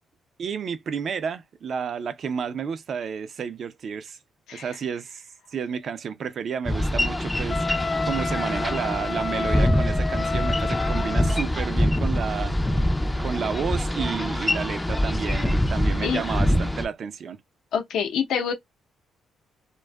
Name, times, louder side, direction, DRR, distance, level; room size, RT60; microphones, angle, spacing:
voice 1, 0.4-4.2 4.5-5.2 5.5-12.5 13.2-17.4, right 6 dB, 55° right, 0.4 m, -31 dB
Boat Water vehicle, 6.7-16.9, left 1 dB, 10° left, 0.4 m, -24 dB
Wind instrument woodwind instrument, 7.5-11.4, left 4 dB, 45° left, 0.8 m, -30 dB
voice 2, 17.7-18.5, left 7 dB, 80° left, 0.7 m, -26 dB
2.5 x 2.2 x 2.2 m
cardioid pair, 90°, 0 cm